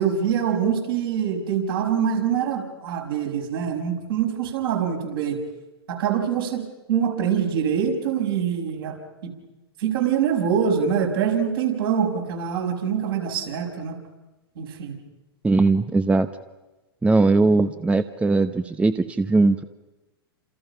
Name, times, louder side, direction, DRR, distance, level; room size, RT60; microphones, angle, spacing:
voice 1, 0.0-5.4 5.9-9.0 9.2-9.3 9.8-14.0 14.6-15.0, right 8 dB, 65° right, 1 dB, 6.3 m, -24 dB
voice 2, 15.4-16.3 17.0-19.6, right 3 dB, 10° right, 10 dB, 0.9 m, -19 dB
29.5 x 27.5 x 5.7 m, 1.1 s
hypercardioid pair, 105°, 13 cm